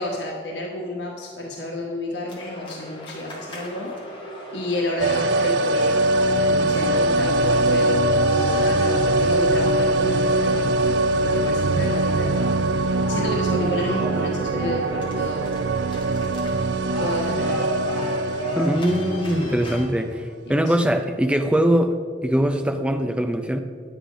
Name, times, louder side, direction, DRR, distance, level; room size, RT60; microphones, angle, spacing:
voice 1, 0.0-3.9 4.5-15.5 17.0-17.7 20.5-20.8, left 1 dB, 85° left, -1 dB, 1.2 m, -31 dB
sound 1, 2.3-19.8, equal, 25° left, 1.9 m, -36 dB
sound 2, 5.0-19.9 20.1-20.2, right 2 dB, 80° right, 0.4 m, -22 dB
voice 2, 18.5-22.0 22.2-23.6, equal, 5° right, 6 dB, 0.5 m, -22 dB
10.0 x 8.6 x 5.1 m, 2.1 s
head